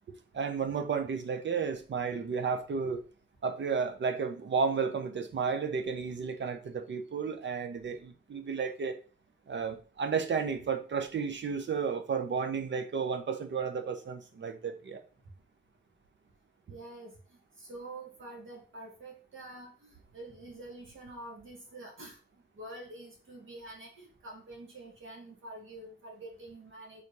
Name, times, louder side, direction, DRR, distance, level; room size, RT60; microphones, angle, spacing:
voice 1, 0.3-3.0 3.4-9.0 9.5-15.0, right 5 dB, 70° right, 8 dB, 1.0 m, -32 dB
voice 2, 16.7-22.2 22.5-27.0, right 2 dB, 85° right, 0 dB, 2.3 m, -47 dB
4.8 x 4.1 x 5.4 m, 0.38 s
wide cardioid pair, 100°, 20 cm